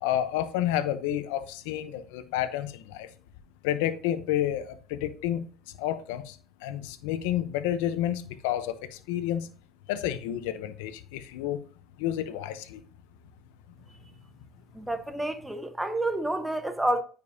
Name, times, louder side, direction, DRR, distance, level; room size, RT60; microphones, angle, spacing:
voice 1, 0.0-3.1 3.6-5.5 5.8-9.5 9.9-11.6 12.0-12.8, left 11 dB, 90° left, 0.8 m, -30 dB
voice 2, 14.8-17.0, right 1 dB, 5° right, 1.0 m, -29 dB
9.3 x 5.3 x 2.7 m
supercardioid pair, 100°, 0 cm